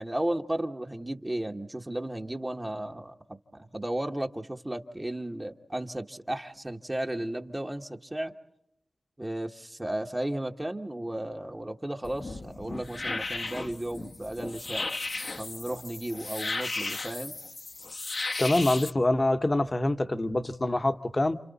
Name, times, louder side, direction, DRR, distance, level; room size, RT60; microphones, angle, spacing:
voice 1, 0.0-8.3 9.2-14.9 15.4-17.4, right 1 dB, 20° right, 1.1 m, -34 dB
sound 1, 12.0-18.9, left 3 dB, 55° left, 1.0 m, -35 dB
voice 2, 18.4-21.4, left 1 dB, 30° left, 1.0 m, -25 dB
30.0 x 28.0 x 4.1 m
wide cardioid pair, 90°, 0 cm